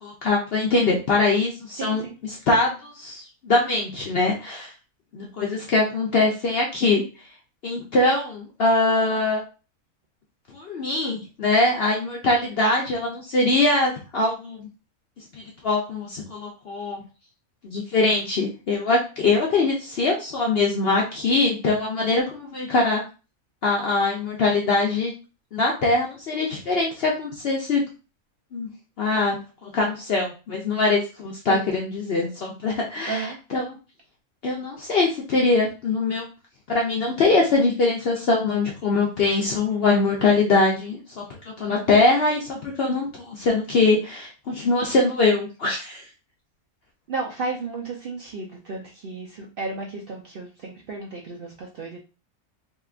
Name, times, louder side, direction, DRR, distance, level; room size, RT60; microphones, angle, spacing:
voice 1, 0.0-4.7 5.1-7.0 7.6-9.4 10.5-14.7 15.4-17.0 17.6-23.0 23.6-25.1 25.5-27.8 28.5-28.7 29.0-33.8 34.4-36.3 36.7-41.2 41.6-46.0, left 3 dB, 60° left, -1 dB, 0.6 m, -22 dB
voice 2, 1.8-2.1 31.5-31.8 33.1-33.4 47.1-52.0, right 4 dB, 65° right, -2 dB, 0.6 m, -33 dB
3.3 x 2.8 x 2.4 m, 0.33 s
omnidirectional pair, 1.5 m